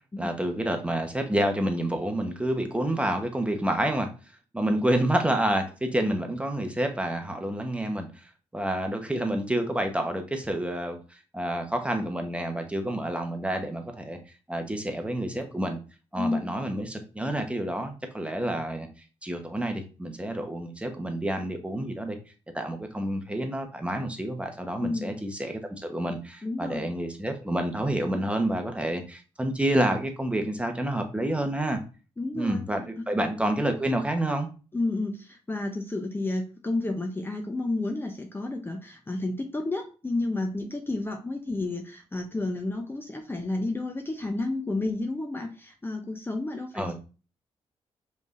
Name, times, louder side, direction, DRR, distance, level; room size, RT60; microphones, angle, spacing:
voice 1, 0.2-4.1 4.5-8.1 8.5-14.2 14.5-15.8 16.1-18.9 19.2-22.2 22.5-31.8 32.3-34.5 46.7-47.0, right 1 dB, 10° right, 5 dB, 0.9 m, -28 dB
voice 2, 16.2-16.5 24.8-25.2 26.4-26.9 32.2-32.6 33.0-33.1 34.7-47.0, left 2 dB, 20° left, 3 dB, 0.6 m, -31 dB
5.1 x 3.3 x 2.5 m, 0.35 s
cardioid pair, 65°, 12 cm